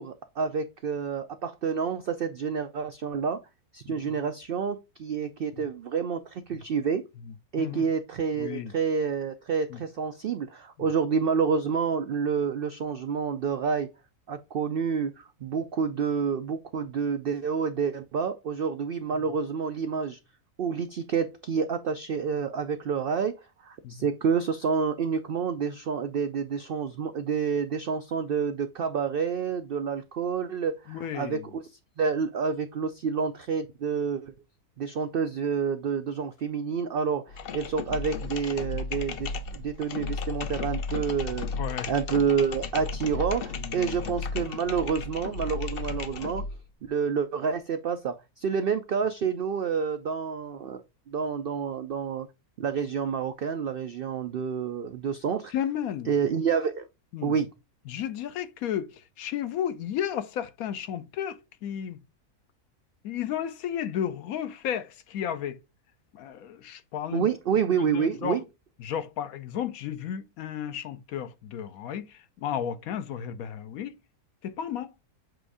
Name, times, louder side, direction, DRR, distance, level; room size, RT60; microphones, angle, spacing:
voice 1, 0.0-3.4 3.7-7.0 7.5-13.9 14.3-20.2 20.6-31.7 32.0-34.3 34.8-41.5 41.9-46.4 46.8-52.3 52.6-55.5 56.0-56.9 57.2-57.5 67.1-68.4, right 6 dB, 85° right, 0.5 m, -28 dB
voice 2, 8.4-8.7 9.7-9.8 23.8-23.9 30.9-31.5 41.6-41.9 43.6-44.2 55.5-56.1 57.1-57.3 57.9-58.9 59.2-62.0 63.0-65.6 66.1-67.3 67.7-68.4 68.8-73.9 74.4-74.9, left 9 dB, 75° left, 1.1 m, -33 dB
sound 1, 37.3-46.6, left 4 dB, 60° left, 0.6 m, -34 dB
7.7 x 2.6 x 4.8 m
omnidirectional pair, 1.6 m